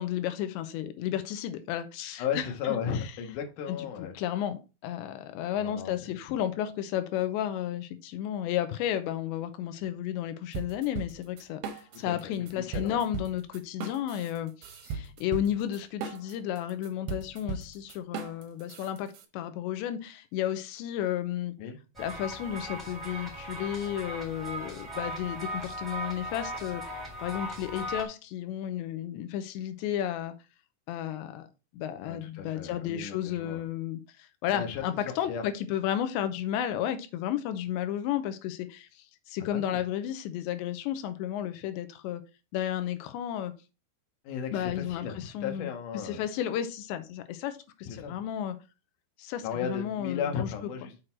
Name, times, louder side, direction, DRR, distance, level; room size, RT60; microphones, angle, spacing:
voice 1, 0.0-2.7 3.7-21.5 22.0-26.8 27.2-30.3 30.9-31.5 31.7-42.2 42.5-43.5 44.5-48.6 49.2-50.5, left 11 dB, 90° left, 3.0 m, -33 dB
voice 2, 2.2-4.1 5.5-6.0 12.0-13.0 21.6-21.8 32.0-33.6 34.5-35.4 39.4-39.8 44.2-46.2 47.8-48.2 49.4-50.9, left 7 dB, 60° left, 2.3 m, -35 dB
sound 1, 10.5-12.2 12.5-19.3, right 5 dB, 70° right, 2.7 m, -38 dB
sound 2, 21.9-28.0, right 1 dB, ahead, 2.8 m, -38 dB
6.5 x 6.1 x 4.4 m
omnidirectional pair, 5.1 m